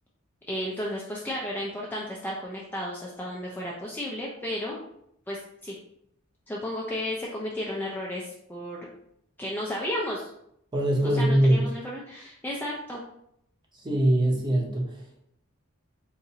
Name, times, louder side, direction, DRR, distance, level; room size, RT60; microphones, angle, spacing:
voice 1, 0.5-4.8 5.3-5.7 6.5-8.8 9.4-10.3 11.2-13.0, left 1 dB, 10° left, -3 dB, 0.3 m, -33 dB
voice 2, 10.7-11.7 13.7-15.2, right 1 dB, 20° right, -1 dB, 0.6 m, -23 dB
3.9 x 2.5 x 2.7 m, 0.75 s
head